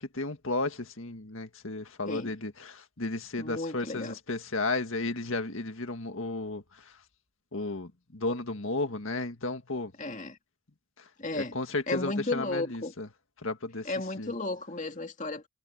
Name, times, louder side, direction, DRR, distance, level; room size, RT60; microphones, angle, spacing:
voice 1, 0.0-6.9 7.5-9.9 11.0-11.1 11.3-13.1 13.4-13.9 14.2-14.3, left 2 dB, 65° left, 1.9 m, -33 dB
voice 2, 3.4-4.2 10.0-10.4 11.2-11.6 11.9-12.9 13.8-15.5, left 2 dB, 35° left, 2.3 m, -34 dB
head